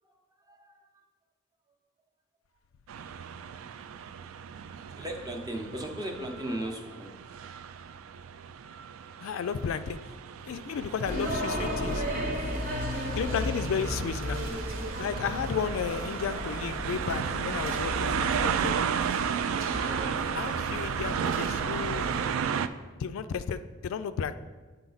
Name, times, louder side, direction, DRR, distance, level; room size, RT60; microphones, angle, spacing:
voice 1, 0.0-0.8 4.2-4.3 4.9-7.2, right 1 dB, 20° right, 2 dB, 0.7 m, -37 dB
sound 1, 2.9-22.7, right 7 dB, 75° right, 0.3 m, -34 dB
voice 2, 9.2-10.0 10.4-12.0 12.9-14.4 15.0-18.7 20.3-22.1 23.0-24.3, left 6 dB, 70° left, 11 dB, 0.3 m, -33 dB
sound 2, 11.0-22.4, equal, 45° right, 1.1 m, -34 dB
9.5 x 4.2 x 3.9 m, 1.3 s
head